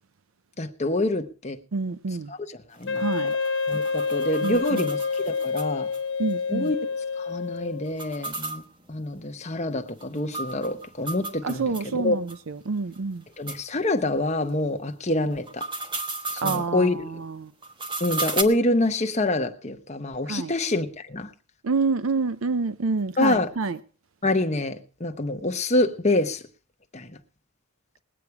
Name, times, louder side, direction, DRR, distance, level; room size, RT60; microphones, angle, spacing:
voice 1, 0.6-1.6 2.3-3.1 3.7-5.9 6.5-6.8 7.2-8.6 8.9-12.2 13.4-15.7 16.3-17.2 18.0-21.3 23.2-23.5 24.2-26.4 26.9-27.1, left 2 dB, 30° left, 1.1 m, -26 dB
voice 2, 1.7-2.3 3.0-3.3 4.4-4.8 6.2-6.7 11.4-13.2 16.4-16.9 17.2-17.5 20.3-20.5 21.6-23.8, right 4 dB, 65° right, 0.5 m, -27 dB
sound 1, 2.7-6.0 6.3-6.4 6.7-6.8 7.9-11.9 12.3-12.4 12.9-13.0 13.5-13.6 15.3-16.7 17.6-18.4, right 3 dB, 20° right, 1.2 m, -34 dB
Wind instrument woodwind instrument, 2.9-7.9, left 5 dB, 55° left, 0.6 m, -28 dB
20.5 x 8.5 x 4.7 m
head